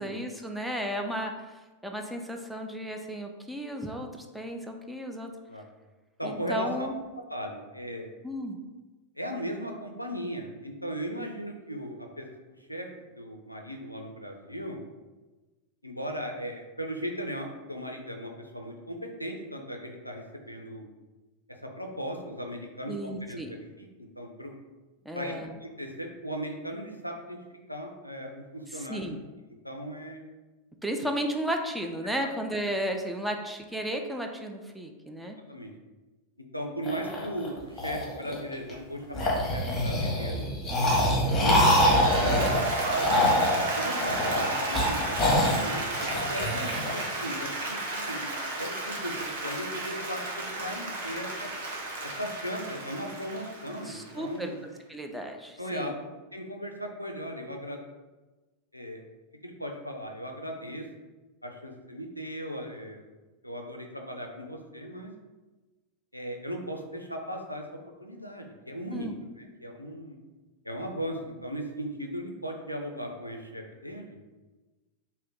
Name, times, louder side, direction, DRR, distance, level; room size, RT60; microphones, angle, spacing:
voice 1, 0.0-1.3 1.8-5.3 6.2-6.9 8.2-8.6 22.9-23.5 25.1-25.5 28.7-29.2 30.8-35.4 53.8-54.5 54.9-56.0 68.9-69.1, equal, 5° right, 3 dB, 0.3 m, -34 dB
voice 2, 6.2-6.9 7.3-8.2 9.2-12.3 12.7-12.9 13.2-14.8 15.8-20.9 21.8-24.5 25.1-27.4 27.7-29.0 29.6-30.2 35.2-35.7 36.5-40.5 41.4-42.7 43.4-48.3 48.6-51.5 52.0-54.6 55.6-56.0 56.3-57.8 58.7-59.0 59.4-60.8 61.4-63.0 63.4-65.1 66.1-67.6 68.0-69.1 69.4-70.2 70.6-74.2, equal, 90° left, 2 dB, 0.4 m, -37 dB
sound 1, 36.9-38.7 39.1-47.0, left 1 dB, 15° left, 0.8 m, -25 dB
Applause, 41.2-54.4, right 2 dB, 60° right, 0.6 m, -33 dB
2.6 x 2.1 x 3.6 m, 1.2 s
figure-of-eight pair, 90°, 0 cm